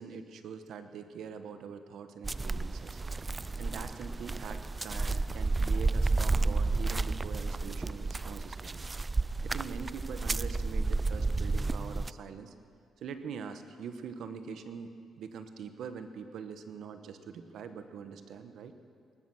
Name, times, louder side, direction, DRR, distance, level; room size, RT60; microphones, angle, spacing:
voice 1, 0.0-3.0 3.3-8.9 9.4-12.5 13.0-18.7, right 6 dB, 70° right, 9 dB, 1.1 m, -43 dB
footsteps in grass, 2.2-12.1, right 3 dB, 25° right, 0.3 m, -31 dB
19.5 x 12.0 x 6.2 m, 2.3 s
cardioid pair, 90°, 0 cm